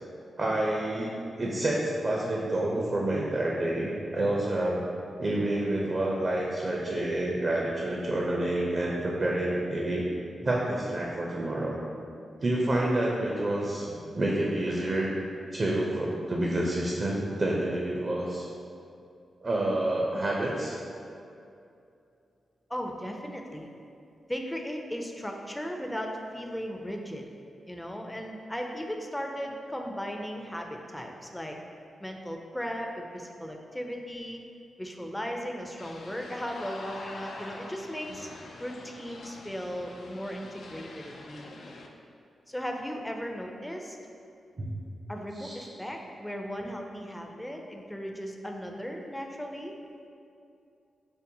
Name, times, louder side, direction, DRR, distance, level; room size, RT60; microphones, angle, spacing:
voice 1, 0.4-4.8 5.2-10.1 10.4-11.8 12.4-15.1 15.5-18.5 19.4-20.8 44.6-44.7 45.4-45.5, right 1 dB, 45° right, -3 dB, 0.5 m, -28 dB
voice 2, 22.7-23.7 24.3-27.2 27.7-31.6 32.0-34.4 34.8-38.3 38.6-41.7 42.5-44.0 45.1-49.7, equal, 10° left, 2 dB, 0.4 m, -37 dB
sound 1, 35.8-41.9, left 2 dB, 75° left, 0.3 m, -45 dB
5.2 x 2.1 x 2.7 m, 2.5 s
supercardioid pair, 50°, 0 cm